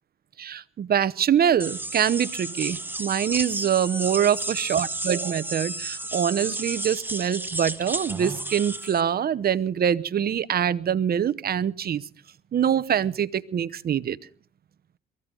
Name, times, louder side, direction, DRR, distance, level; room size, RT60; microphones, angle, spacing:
voice 1, 0.4-12.0 12.5-14.2, right 9 dB, 50° right, 17 dB, 0.9 m, -24 dB
sound 1, 1.6-9.0, right 2 dB, 10° right, 1.6 m, -32 dB
23.0 x 15.5 x 3.8 m, 0.42 s
cardioid pair, 90°, 20 cm